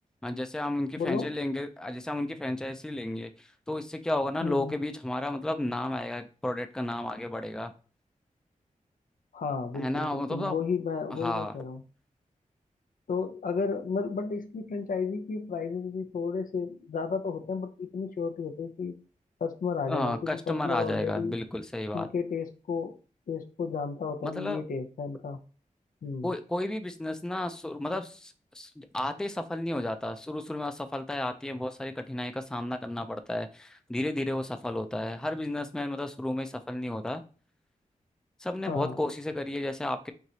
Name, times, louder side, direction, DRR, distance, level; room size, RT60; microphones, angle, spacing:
voice 1, 0.2-7.7 9.7-10.6 11.1-11.5 19.9-22.1 24.2-24.6 26.2-37.2 38.4-40.1, left 1 dB, 5° left, 0.4 m, -32 dB
voice 2, 1.0-1.3 4.4-4.8 9.3-11.8 13.1-19.0 19.4-21.3 21.9-23.0 23.3-25.4 26.0-26.3 38.7-39.0, left 5 dB, 80° left, 0.6 m, -33 dB
4.6 x 3.9 x 2.8 m
wide cardioid pair, 125°, 14 cm